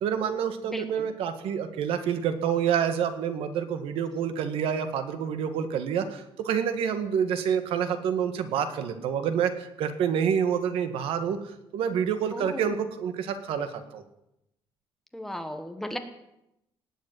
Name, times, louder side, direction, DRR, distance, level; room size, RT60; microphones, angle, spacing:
voice 1, 0.0-11.4 11.7-14.0, right 8 dB, 80° right, 9 dB, 1.8 m, -28 dB
voice 2, 0.7-1.1 12.3-12.9 15.1-16.0, left 1 dB, 5° left, 6 dB, 1.2 m, -36 dB
19.0 x 7.4 x 9.4 m, 0.85 s
cardioid pair, 175°, 9 cm